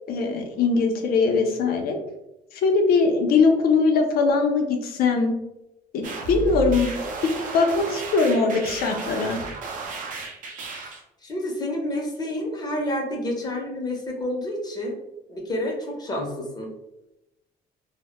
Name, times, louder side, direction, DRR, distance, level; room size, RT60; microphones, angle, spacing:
voice 1, 0.1-2.0 2.5-5.3 5.9-6.9 7.5-9.4, left 4 dB, 65° left, 3 dB, 0.5 m, -21 dB
sound 1, 6.0-11.0, right 3 dB, 50° right, 0.5 m, -33 dB
voice 2, 11.2-14.9 15.3-16.7, left 1 dB, 25° left, 0 dB, 0.6 m, -29 dB
2.1 x 2.0 x 2.9 m, 0.92 s
cardioid pair, 110°, 17 cm